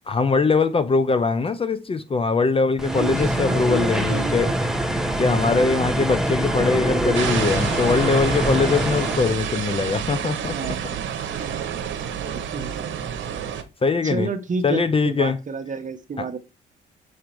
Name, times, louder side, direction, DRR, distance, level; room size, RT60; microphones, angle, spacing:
voice 1, 0.1-4.6 5.2-10.8 11.4-11.5 13.8-14.3 14.6-15.4 16.2-16.3, left 4 dB, 30° left, 0.6 m, -22 dB
sound 1, 2.8-9.3, right 1 dB, ahead, 0.9 m, -24 dB
voice 2, 2.9-4.5 9.1-9.3 10.5-10.8 11.3-11.5 12.3-12.9 14.0-16.4, right 4 dB, 40° right, 1.1 m, -30 dB
sound 2, 7.1-13.6, right 8 dB, 70° right, 1.1 m, -29 dB
6.3 x 3.7 x 4.5 m
cardioid pair, 90°, 20 cm